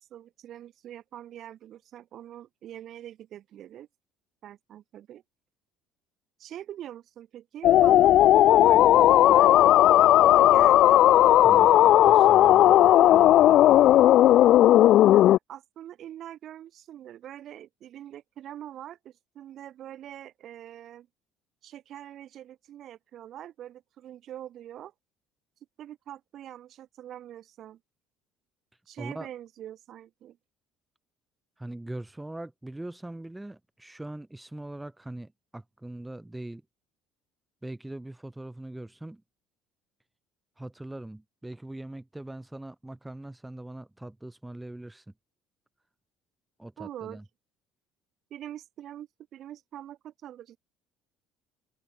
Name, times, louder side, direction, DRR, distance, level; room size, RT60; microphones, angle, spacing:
voice 1, 0.1-3.9 4.4-5.2 6.4-11.0 12.5-13.3 15.1-21.1 21.6-24.9 25.8-27.8 28.9-30.4 46.8-47.2 48.3-50.6, right 11 dB, 50° right, 6.9 m, -44 dB
sound 1, 7.6-15.4, left 13 dB, 55° left, 0.4 m, -16 dB
voice 2, 11.4-14.1 29.0-29.3 31.6-36.6 37.6-39.2 40.6-45.1 46.6-47.2, right 1 dB, 5° right, 5.8 m, -41 dB
open air
cardioid pair, 120°, 0 cm